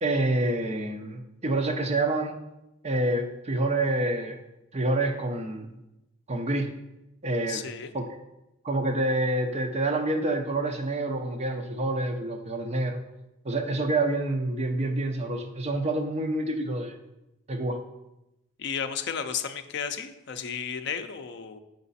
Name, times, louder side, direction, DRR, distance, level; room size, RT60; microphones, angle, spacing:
voice 1, 0.0-2.4 2.8-4.4 4.7-5.7 6.3-6.8 7.2-7.6 7.9-8.2 8.6-13.0 13.4-17.0 17.5-17.8, right 2 dB, 30° right, 4 dB, 0.6 m, -27 dB
voice 2, 7.5-7.9 18.6-21.6, left 7 dB, 55° left, 8 dB, 0.5 m, -33 dB
6.6 x 4.9 x 4.1 m, 0.95 s
head